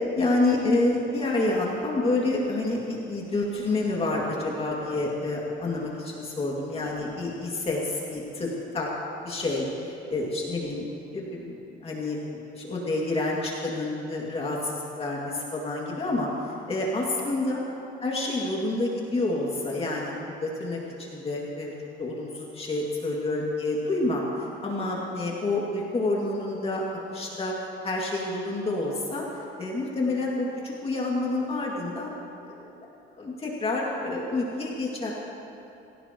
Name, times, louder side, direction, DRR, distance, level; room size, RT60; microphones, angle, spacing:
voice 1, 0.2-8.9 9.2-16.3 16.7-17.6 18.0-21.7 22.0-24.2 24.6-26.8 27.1-29.2 29.6-32.2 32.5-32.7 33.2-35.1, left 2 dB, 30° left, -3 dB, 2.4 m, -28 dB
26.0 x 16.5 x 3.1 m, 3.0 s
cardioid pair, 130°, 20 cm